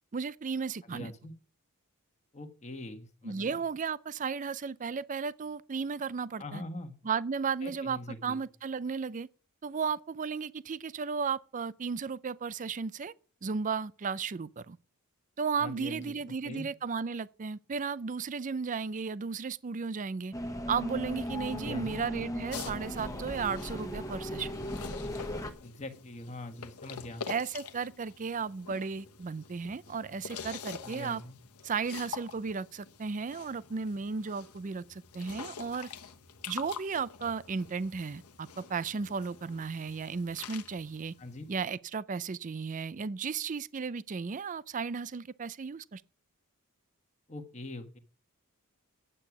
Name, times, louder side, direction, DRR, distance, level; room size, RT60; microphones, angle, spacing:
voice 1, 0.1-1.1 3.2-6.6 7.0-9.3 9.6-13.1 13.4-14.8 15.4-20.3 20.7-24.5 27.3-31.2 31.6-35.9 36.5-41.1 41.5-46.0, right 5 dB, 35° right, 0.4 m, -34 dB
voice 2, 0.8-1.3 2.3-3.6 6.4-7.0 7.6-8.4 15.6-16.7 21.5-22.0 25.6-27.2 30.8-31.3 41.2-41.4 47.3-48.0, left 1 dB, 30° left, 1.4 m, -43 dB
sound 1, 20.3-25.5, left 1 dB, 15° left, 1.1 m, -37 dB
sound 2, 22.5-41.7, left 6 dB, 80° left, 1.1 m, -46 dB
9.9 x 8.5 x 6.0 m
head